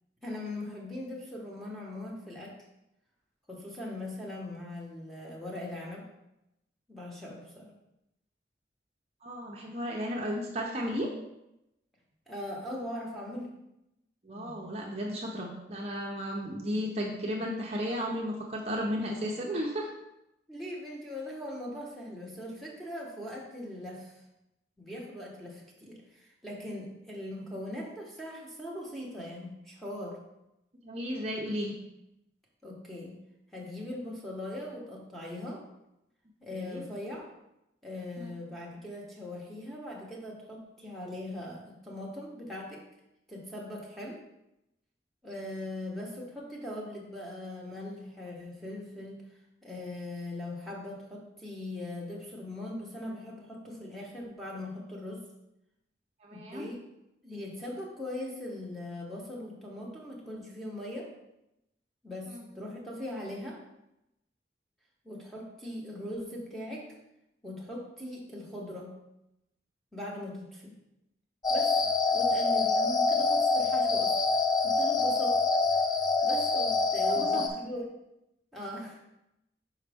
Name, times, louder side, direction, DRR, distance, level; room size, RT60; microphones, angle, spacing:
voice 1, 0.2-2.5 3.5-6.0 6.9-7.7 12.3-13.5 14.3-14.7 20.5-24.2 24.8-30.2 32.6-33.2 33.5-35.6 36.4-37.3 37.8-42.8 43.3-44.2 45.2-49.2 49.6-55.2 56.3-56.8 57.2-61.1 62.0-63.6 65.0-66.9 67.4-69.0 69.9-70.8 71.5-71.8 72.1-74.1 74.6-75.4 76.2-78.0 78.5-79.0, left 1 dB, ahead, -5 dB, 1.1 m, -40 dB
voice 2, 9.2-11.1 14.2-19.9 30.8-31.8 36.5-36.8 38.2-38.4 56.2-56.6 62.3-62.4 77.1-77.4, equal, 35° right, -2 dB, 0.6 m, -34 dB
sound 1, 71.4-77.5, left 3 dB, 20° left, 0.4 m, -26 dB
5.5 x 5.0 x 3.5 m, 0.88 s
head